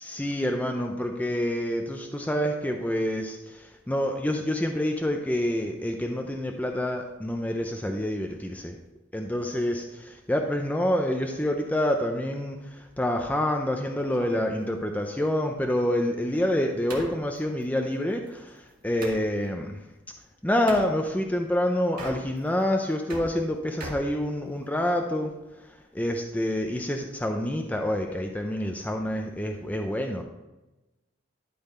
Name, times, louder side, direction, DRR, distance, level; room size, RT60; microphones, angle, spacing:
voice 1, 0.0-3.4 3.9-8.7 9.1-12.6 13.0-18.4 18.8-19.7 20.4-25.3 25.9-30.2, left 1 dB, 10° left, 2 dB, 0.5 m, -27 dB
sound 1, 14.0-19.3 20.7-20.9 21.8-22.6 22.9-24.9, right 1 dB, 45° right, 1.7 m, -42 dB
12.0 x 4.0 x 4.2 m, 1.0 s
head